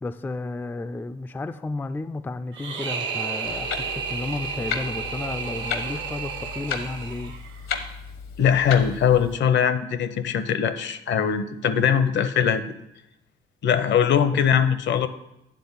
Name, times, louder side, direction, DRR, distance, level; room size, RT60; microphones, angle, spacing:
voice 1, 0.0-7.3 14.3-14.5, left 2 dB, 10° left, 10 dB, 0.3 m, -32 dB
sound 1, 2.5-7.7, right 6 dB, 70° right, 1.2 m, -32 dB
Clock, 3.4-9.4, left 6 dB, 85° left, 1.0 m, -34 dB
voice 2, 8.4-12.6 13.6-15.1, left 8 dB, 65° left, 12 dB, 0.7 m, -21 dB
9.3 x 3.8 x 7.1 m, 0.87 s
cardioid pair, 90°, 20 cm